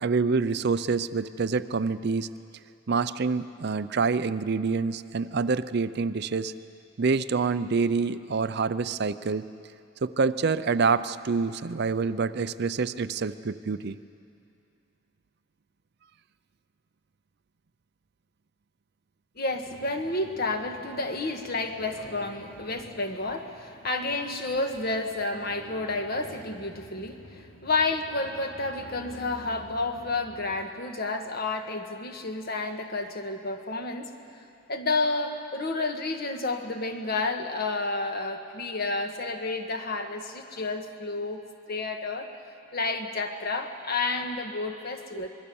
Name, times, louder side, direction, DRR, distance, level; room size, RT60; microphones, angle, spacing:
voice 1, 0.0-2.3 2.9-6.5 7.0-9.5 10.0-14.0 45.1-45.2, right 4 dB, 50° right, 13 dB, 0.5 m, -26 dB
voice 2, 19.4-34.1 34.7-41.4 41.7-42.3 42.7-45.3, left 3 dB, 45° left, 5 dB, 1.6 m, -30 dB
sound 1, 19.6-30.6, left 1 dB, 80° left, 2.1 m, -49 dB
25.0 x 21.5 x 7.0 m, 2.6 s
head